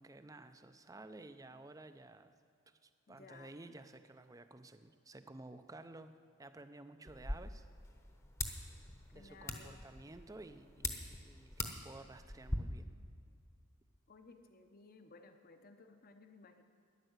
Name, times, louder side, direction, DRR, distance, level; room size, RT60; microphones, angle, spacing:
voice 1, 0.0-2.3 2.7-6.1 6.4-7.6 9.1-12.9, right 2 dB, 15° right, 10 dB, 0.5 m, -53 dB
voice 2, 3.1-3.5 9.1-9.9 14.1-16.6, left 3 dB, 45° left, 7 dB, 0.8 m, -58 dB
sound 1, 7.1-12.6, left 2 dB, 15° left, 0.9 m, -43 dB
12.5 x 10.5 x 8.0 m, 2.3 s
head